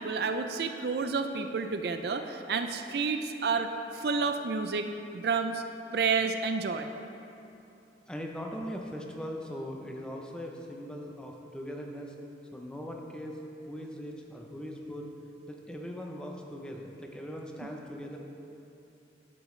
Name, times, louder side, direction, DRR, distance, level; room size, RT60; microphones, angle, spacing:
voice 1, 0.0-4.9 5.1-5.6 5.9-6.9 17.6-17.7, right 4 dB, 60° right, 7 dB, 0.4 m, -30 dB
voice 2, 8.1-12.1 12.5-13.4 13.7-15.1 15.5-18.2, equal, 5° left, 0 dB, 0.6 m, -40 dB
10.0 x 8.1 x 3.2 m, 2.8 s
head